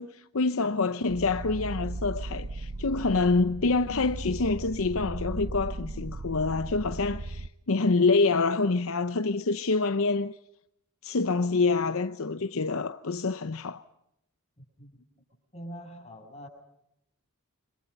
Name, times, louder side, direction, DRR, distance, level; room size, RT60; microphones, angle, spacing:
voice 1, 0.0-10.3 11.0-13.8, left 3 dB, 65° left, 0.8 m, -26 dB
sound 1, 1.1-7.5, right 2 dB, 85° right, 0.9 m, -37 dB
voice 2, 15.5-16.5, equal, 30° left, 6.6 m, -43 dB
28.5 x 25.5 x 5.5 m
head